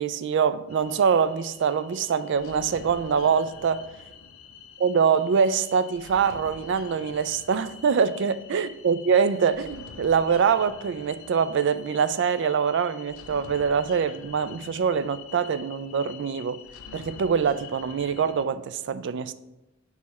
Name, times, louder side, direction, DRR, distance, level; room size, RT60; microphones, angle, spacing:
voice 1, 0.0-3.8 4.8-16.6 16.9-19.3, right 6 dB, 60° right, 0.3 m, -24 dB
sound 1, 0.7-18.5, left 6 dB, 85° left, 0.5 m, -46 dB
4.8 x 4.1 x 5.5 m
head